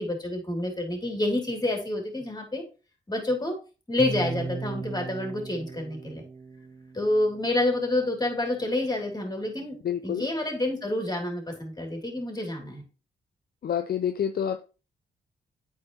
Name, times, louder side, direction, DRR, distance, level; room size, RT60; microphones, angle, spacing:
voice 1, 0.0-2.6 3.1-3.5 3.9-6.2 6.9-9.7 10.0-12.8, left 1 dB, 20° left, 2.9 m, -28 dB
sound 1, 4.0-8.1, right 4 dB, 30° right, 0.9 m, -37 dB
voice 2, 9.8-10.3 13.6-14.6, left 9 dB, 50° left, 0.5 m, -28 dB
8.7 x 4.4 x 3.0 m
hypercardioid pair, 40°, 20 cm